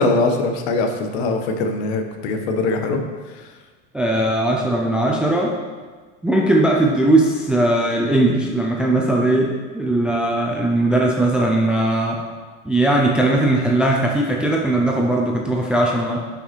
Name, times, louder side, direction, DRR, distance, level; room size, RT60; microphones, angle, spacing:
voice 1, 0.0-3.0, left 3 dB, 60° left, 5 dB, 1.4 m, -21 dB
voice 2, 3.9-5.5 6.2-12.2 12.6-16.2, right 1 dB, 5° right, -1 dB, 0.4 m, -19 dB
11.0 x 5.9 x 4.5 m, 1.4 s
supercardioid pair, 155°, 37 cm